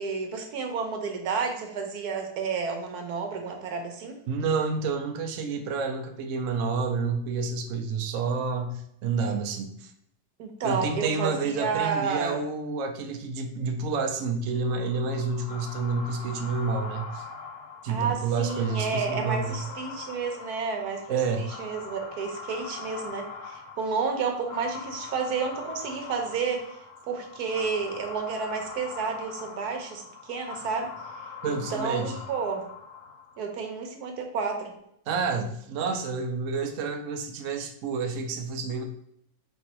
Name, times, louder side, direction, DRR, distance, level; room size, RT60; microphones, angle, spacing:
voice 1, 0.0-4.2 10.4-12.4 17.9-26.6 27.1-30.9 31.5-32.6 33.4-34.7, right 5 dB, 85° right, 3 dB, 1.3 m, -31 dB
voice 2, 4.3-9.9 10.6-17.3 17.8-19.6 21.1-21.5 31.4-32.2 35.1-38.8, right 4 dB, 65° right, 5 dB, 0.9 m, -29 dB
sound 1, 14.6-33.5, left 5 dB, 85° left, 1.4 m, -42 dB
4.5 x 3.1 x 2.9 m, 0.73 s
omnidirectional pair, 1.6 m